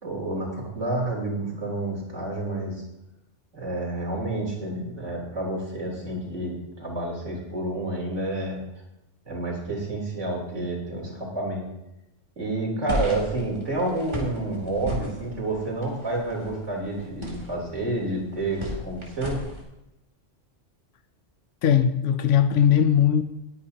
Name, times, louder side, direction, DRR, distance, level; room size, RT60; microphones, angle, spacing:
voice 1, 0.0-2.8 3.5-8.6 9.3-11.6 12.4-19.4, right 2 dB, 75° right, -3 dB, 3.9 m, -29 dB
sound 1, 12.9-19.6, equal, 25° right, 2.9 m, -35 dB
voice 2, 21.6-23.2, left 9 dB, 85° left, 9 dB, 1.0 m, -19 dB
20.0 x 9.7 x 2.9 m, 0.90 s
omnidirectional pair, 1.2 m